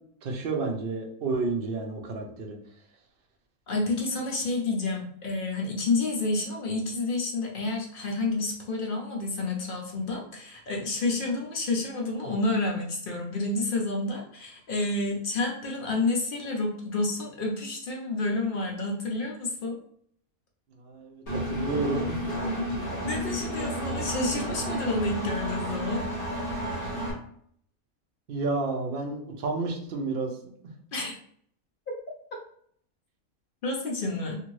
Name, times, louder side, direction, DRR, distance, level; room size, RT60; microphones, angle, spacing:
voice 1, 0.2-2.6 20.8-22.0 28.3-30.3, right 3 dB, 55° right, 1 dB, 0.6 m, -30 dB
voice 2, 3.7-19.8 23.0-26.0 30.9-31.2 32.3-32.4 33.6-34.4, left 2 dB, 60° left, 0 dB, 0.5 m, -29 dB
Engine, 21.3-27.1, equal, 30° left, 0.9 m, -31 dB
2.6 x 2.6 x 3.0 m, 0.63 s
omnidirectional pair, 1.5 m